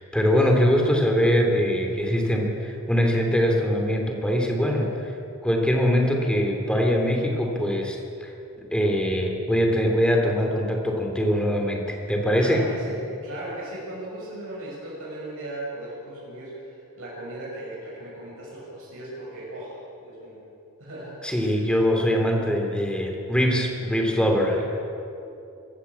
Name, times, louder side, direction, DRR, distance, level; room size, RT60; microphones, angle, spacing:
voice 1, 0.0-4.8 5.4-8.3 8.6-12.6 21.2-24.6, equal, 5° left, 2 dB, 3.1 m, -22 dB
voice 2, 12.4-20.4 20.8-21.6 24.5-24.6, right 1 dB, 65° right, -6 dB, 6.6 m, -37 dB
25.5 x 14.5 x 8.4 m, 2.7 s
head